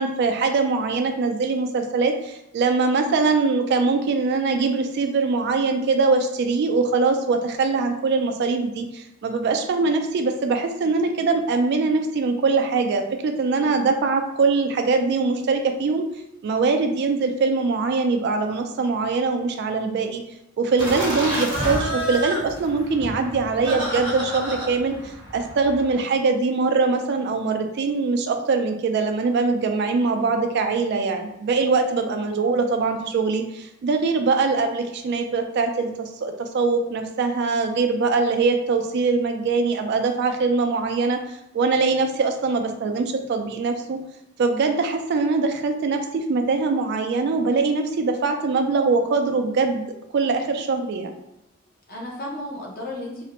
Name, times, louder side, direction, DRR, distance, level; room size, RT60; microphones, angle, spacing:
voice 1, 0.0-16.1 16.4-20.2 20.6-44.0 44.4-49.8 50.1-51.1, right 4 dB, 55° right, 6 dB, 0.3 m, -22 dB
voice 2, 13.5-13.9 31.9-32.2 51.9-53.3, left 1 dB, 50° left, -1 dB, 0.6 m, -35 dB
Laughter, 20.8-26.0, equal, 25° right, 0.6 m, -29 dB
2.4 x 2.1 x 2.8 m, 0.84 s
head